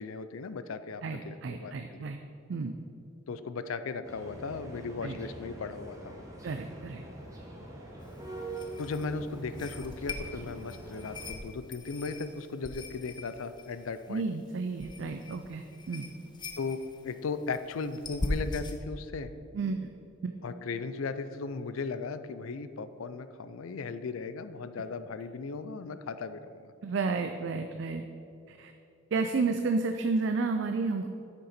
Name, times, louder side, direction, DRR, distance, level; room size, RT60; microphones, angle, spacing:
voice 1, 0.0-2.0 3.3-6.3 8.8-14.3 16.6-19.3 20.4-26.7, left 4 dB, 80° left, 12 dB, 0.4 m, -37 dB
voice 2, 1.0-2.2 2.5-2.7 5.0-5.2 6.4-7.0 14.1-16.1 19.5-19.9 20.2-20.3 26.8-28.0 28.5-28.7 29.1-31.1, right 4 dB, 60° right, 7 dB, 0.4 m, -31 dB
sound 1, 4.0-11.3, right 2 dB, 15° right, 1.2 m, -44 dB
sound 2, 8.0-18.8, left 2 dB, 20° left, 0.5 m, -41 dB
9.0 x 6.6 x 4.3 m, 2.8 s
head